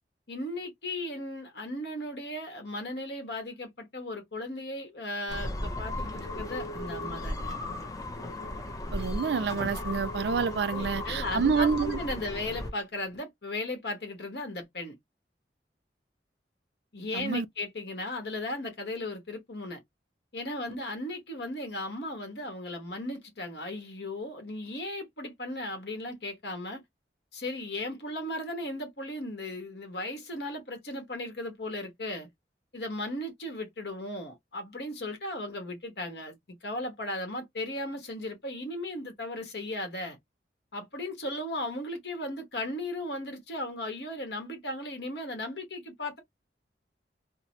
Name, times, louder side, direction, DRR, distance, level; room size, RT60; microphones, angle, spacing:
voice 1, 0.3-7.5 10.7-15.0 16.9-19.8 20.3-26.8 27.3-32.3 32.7-40.2 40.7-46.2, left 1 dB, 65° left, 1.2 m, -36 dB
sound 1, 5.3-12.7, left 1 dB, 20° left, 0.5 m, -35 dB
voice 2, 8.9-12.0 17.1-17.5, right 5 dB, 70° right, 0.4 m, -28 dB
2.8 x 2.0 x 2.8 m
head